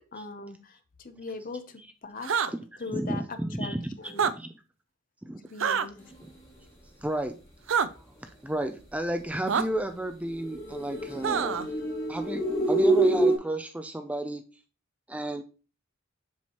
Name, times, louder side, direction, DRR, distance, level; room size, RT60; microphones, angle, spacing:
voice 1, 0.1-0.8 1.0-2.4 2.8-3.2 3.6-4.3 5.4-6.1, left 3 dB, 40° left, 9 dB, 0.8 m, -40 dB
sound 1, 2.2-2.5 4.1-4.3 5.6-5.9 7.7-7.9 9.5-9.6 11.2-11.7, right 7 dB, 65° right, 0.5 m, -25 dB
voice 2, 2.5-4.5 5.2-5.4 7.0-7.3 8.4-11.6 12.1-14.4 15.1-15.4, right 1 dB, 5° right, 7 dB, 0.5 m, -32 dB
sound 2, 10.4-13.4, right 2 dB, 15° left, 3.1 m, -26 dB
7.2 x 6.0 x 3.0 m, 0.34 s
head